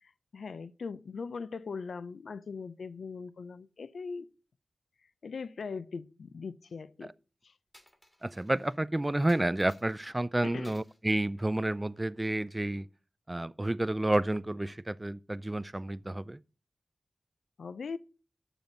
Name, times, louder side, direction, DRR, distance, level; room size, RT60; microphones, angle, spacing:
voice 1, 0.0-4.3 5.2-7.1 7.4-7.5 10.4-10.8 17.6-18.0, left 5 dB, 80° left, 0.5 m, -40 dB
Coin (dropping), 7.7-8.8 9.3-10.1 10.6-11.0 11.4-12.5, left 1 dB, 15° left, 1.7 m, -60 dB
voice 2, 8.2-12.9 13.3-16.4, right 1 dB, 20° right, 0.4 m, -30 dB
9.0 x 7.0 x 3.9 m
cardioid pair, 50°, 0 cm